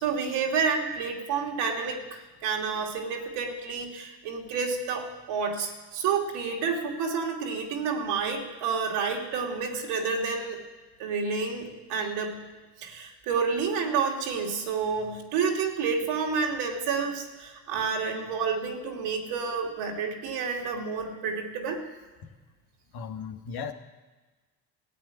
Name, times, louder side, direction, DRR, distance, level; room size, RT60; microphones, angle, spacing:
voice 1, 0.0-10.6 11.0-12.4 12.8-21.8, right 5 dB, 75° right, 1 dB, 2.6 m, -29 dB
voice 2, 22.9-23.7, left 6 dB, 60° left, 6 dB, 1.6 m, -36 dB
14.0 x 8.1 x 9.5 m, 1.3 s
hypercardioid pair, 60°, 41 cm